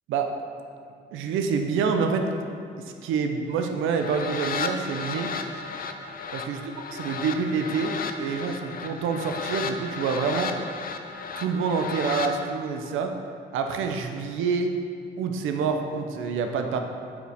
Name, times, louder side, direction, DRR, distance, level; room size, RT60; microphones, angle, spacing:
voice 1, 1.1-2.2 2.8-5.3 6.3-6.6 7.0-10.5 11.4-13.1 13.5-14.7 15.2-16.8, right 5 dB, 85° right, 5 dB, 0.7 m, -27 dB
sound 1, 3.8-12.3, left 5 dB, 45° left, 0.5 m, -34 dB
8.9 x 5.0 x 3.5 m, 2.3 s
cardioid pair, 90°, 20 cm